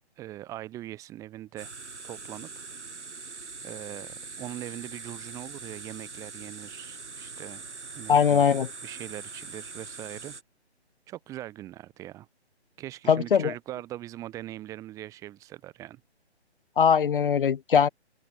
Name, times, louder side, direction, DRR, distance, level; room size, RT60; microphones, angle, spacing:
voice 1, 0.2-1.7 2.0-2.6 3.2-3.3 3.6-7.6 7.9-8.5 8.8-10.3 11.1-12.3 12.8-16.0, right 14 dB, 10° right, 1.2 m, -41 dB
sound 1, 1.6-10.4, right 4 dB, 90° right, 2.6 m, -42 dB
voice 2, 8.1-8.7 13.1-13.5 16.8-17.9, left 7 dB, 50° left, 0.7 m, -21 dB
open air
hypercardioid pair, 155°, 34 cm